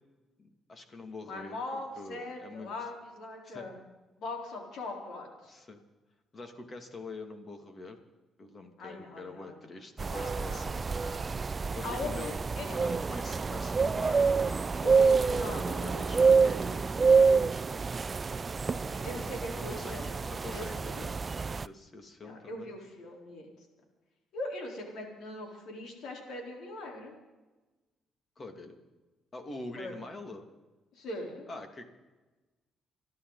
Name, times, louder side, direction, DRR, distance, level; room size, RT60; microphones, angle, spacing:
voice 1, 0.4-2.7 3.4-3.7 5.5-5.8 6.3-8.0 8.4-10.8 11.7-12.3 12.7-17.7 19.2-21.1 21.6-22.7 28.4-28.8 29.3-30.5 31.5-31.8, left 3 dB, 35° left, 5 dB, 2.6 m, -44 dB
voice 2, 1.3-3.8 4.2-5.5 8.8-9.6 10.1-10.6 10.9-11.2 11.8-12.7 15.3-16.5 17.4-17.6 18.2-20.1 20.5-21.0 22.2-23.5 24.3-27.1 29.8-29.9 30.9-31.5, left 2 dB, 75° left, 1 dB, 4.2 m, -41 dB
sound 1, 10.0-21.7, right 5 dB, 35° right, 0.4 m, -27 dB
28.0 x 12.0 x 4.1 m, 1.2 s
cardioid pair, 90°, 0 cm